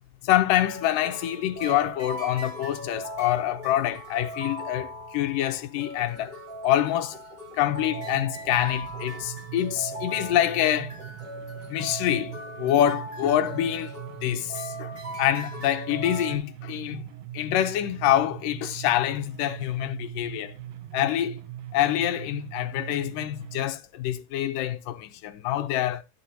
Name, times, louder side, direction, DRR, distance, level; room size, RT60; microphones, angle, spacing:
voice 1, 0.2-6.4 6.6-7.2 7.6-10.9 11.7-13.9 14.2-14.9 15.2-17.0 17.3-20.5 20.9-21.4 21.7-26.0, left 12 dB, 75° left, 2.2 m, -26 dB
sound 1, 0.6-16.4, equal, 15° right, 2.6 m, -39 dB
sound 2, 7.6-23.7, right 13 dB, 75° right, 2.4 m, -41 dB
13.0 x 10.0 x 2.7 m
omnidirectional pair, 4.3 m